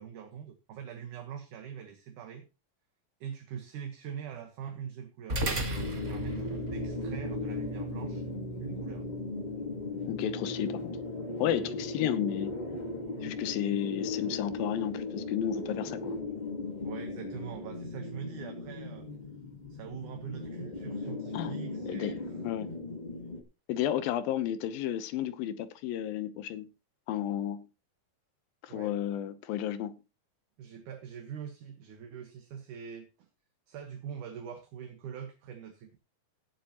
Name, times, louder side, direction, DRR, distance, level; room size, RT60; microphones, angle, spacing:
voice 1, 0.0-2.5 3.2-8.2 8.6-9.0 13.2-13.3 16.8-19.1 19.7-22.2 28.7-28.9 30.6-33.3 33.7-36.0, right 8 dB, 65° right, 2.6 m, -43 dB
sound 1, 5.3-14.0, right 2 dB, 40° right, 1.0 m, -39 dB
sound 2, 5.7-23.4, left 3 dB, 55° left, 0.5 m, -38 dB
voice 2, 10.1-10.9 11.4-12.5 13.2-16.2 21.3-21.5 21.9-22.2 22.4-22.7 23.7-26.7 27.1-27.6 28.6-30.0, left 11 dB, 80° left, 2.6 m, -32 dB
17.5 x 8.1 x 3.0 m
omnidirectional pair, 4.3 m